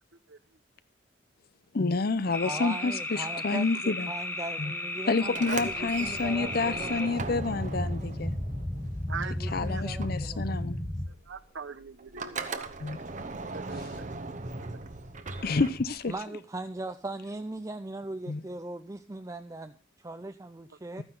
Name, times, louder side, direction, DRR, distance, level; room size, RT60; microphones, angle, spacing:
voice 1, 1.7-4.1 4.6-4.7 5.1-8.3 9.5-10.8 12.8-13.0 15.4-16.1 18.3-18.4, left 3 dB, 50° left, 0.6 m, -29 dB
sound 1, 2.3-11.1, left 1 dB, 10° left, 1.1 m, -34 dB
voice 2, 2.4-7.2 9.2-10.4 16.1-21.0, right 2 dB, 15° right, 0.4 m, -39 dB
Sliding door, 5.2-9.5 9.8-16.2, right 3 dB, 40° right, 0.9 m, -39 dB
voice 3, 5.4-6.0 9.1-9.8 11.3-12.7 13.5-14.7, right 5 dB, 80° right, 0.9 m, -42 dB
13.5 x 9.7 x 3.8 m
head